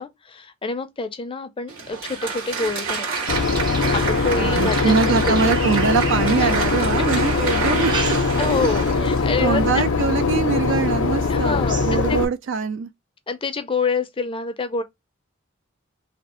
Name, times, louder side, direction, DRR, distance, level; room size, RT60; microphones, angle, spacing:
voice 1, 0.0-3.3 3.9-5.4 6.4-6.5 7.6-7.7 8.4-9.8 11.3-12.2 13.3-14.8, left 4 dB, 25° left, 0.5 m, -27 dB
Applause, 1.7-9.8, right 5 dB, 85° right, 2.1 m, -28 dB
sound 1, 1.9-6.9 7.5-8.7 9.1-9.5 10.1-10.2 10.7-10.8 11.1-12.2, right 3 dB, 25° right, 0.7 m, -36 dB
Boat Water vehicle / Engine, 3.3-12.3, left 4 dB, 90° left, 0.5 m, -22 dB
voice 2, 4.4-8.2 8.5-8.7 9.4-12.9, right 5 dB, 65° right, 0.4 m, -23 dB
3.4 x 2.4 x 4.2 m
head